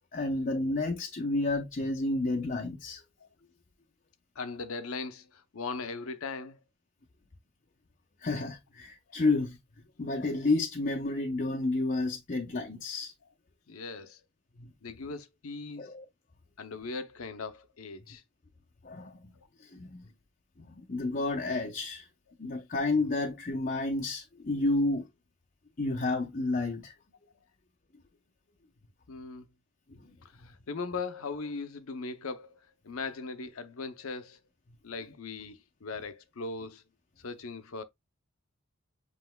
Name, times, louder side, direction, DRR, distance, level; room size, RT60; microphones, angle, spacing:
voice 1, 0.1-3.0 8.2-9.6 10.0-13.1 14.6-14.7 15.8-16.1 18.8-19.2 19.6-20.0 20.6-22.1 22.4-25.1 25.8-26.9 29.9-30.1, left 2 dB, 40° left, 0.6 m, -30 dB
voice 2, 4.4-6.6 13.7-14.2 14.8-15.9 16.6-18.2 19.4-19.5 29.1-29.5 30.4-34.4 34.8-36.8 37.2-37.8, left 4 dB, 80° left, 0.7 m, -39 dB
7.6 x 3.1 x 2.2 m
head